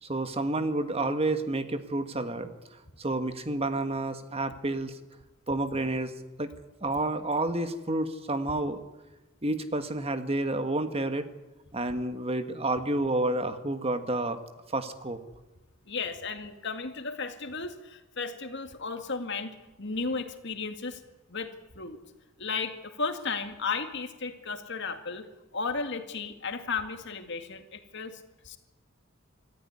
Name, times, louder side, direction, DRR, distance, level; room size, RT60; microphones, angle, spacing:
voice 1, 0.0-2.5 3.0-5.0 5.5-6.5 6.8-8.8 9.4-11.3 11.7-14.4 14.7-15.2, right 2 dB, 30° right, 8 dB, 1.6 m, -30 dB
voice 2, 15.9-21.0 21.3-22.0 22.4-25.3 25.5-28.6, left 4 dB, 60° left, 6 dB, 2.2 m, -34 dB
25.0 x 14.5 x 9.6 m, 1.1 s
head